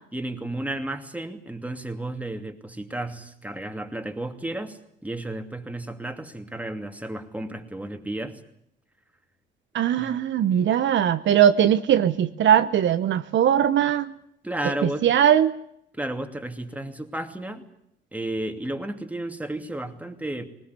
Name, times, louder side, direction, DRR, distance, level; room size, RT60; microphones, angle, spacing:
voice 1, 0.1-8.4 10.0-10.1 14.4-15.1 15.9-17.6 18.1-20.5, right 1 dB, 5° right, 6 dB, 2.7 m, -33 dB
voice 2, 9.7-14.1 14.8-15.5, right 10 dB, 70° right, 11 dB, 1.0 m, -20 dB
20.5 x 19.5 x 9.6 m, 0.73 s
cardioid pair, 90°, 20 cm